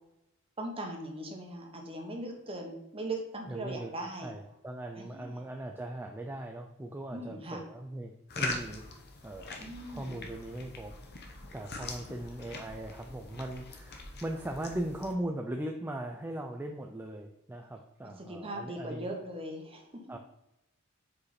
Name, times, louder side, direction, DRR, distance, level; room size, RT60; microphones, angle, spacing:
voice 1, 0.6-4.3 4.9-5.3 7.1-7.6 9.6-10.2 12.0-12.1 18.2-20.2, right 1 dB, 25° right, 2 dB, 1.1 m, -39 dB
voice 2, 3.5-3.9 4.2-8.1 8.4-8.8 9.2-9.5 9.9-19.1 20.1-20.2, right 1 dB, 10° right, 2 dB, 0.4 m, -39 dB
sound 1, 8.3-15.1, left 2 dB, 50° left, 0.9 m, -42 dB
4.8 x 4.8 x 4.2 m, 0.87 s
head